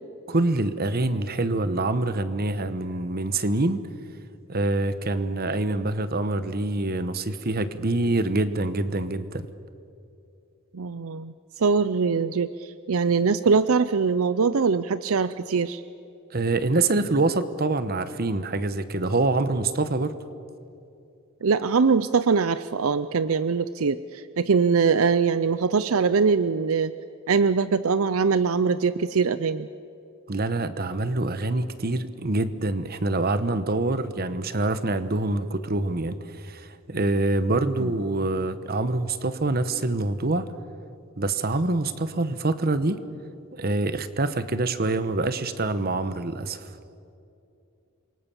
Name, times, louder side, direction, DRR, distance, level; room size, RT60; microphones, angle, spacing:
voice 1, 0.3-3.8 4.5-9.5 16.3-20.1 30.3-40.5 41.2-43.0 43.6-46.7, right 2 dB, 45° right, 13 dB, 1.1 m, -25 dB
voice 2, 10.7-15.8 21.4-26.9 27.3-29.7 37.8-37.9, right 5 dB, 70° right, 14 dB, 0.6 m, -22 dB
28.0 x 24.0 x 7.0 m, 2.6 s
head